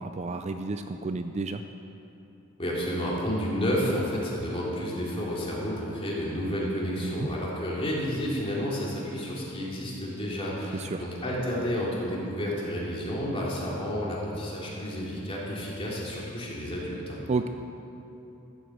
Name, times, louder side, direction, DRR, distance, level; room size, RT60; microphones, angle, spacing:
voice 1, 0.0-1.6 7.0-7.3 10.7-11.0 17.3-17.5, right 3 dB, 30° right, 7 dB, 0.4 m, -31 dB
voice 2, 2.6-17.2, equal, 25° left, -5 dB, 3.1 m, -31 dB
14.0 x 8.0 x 7.9 m, 2.9 s
head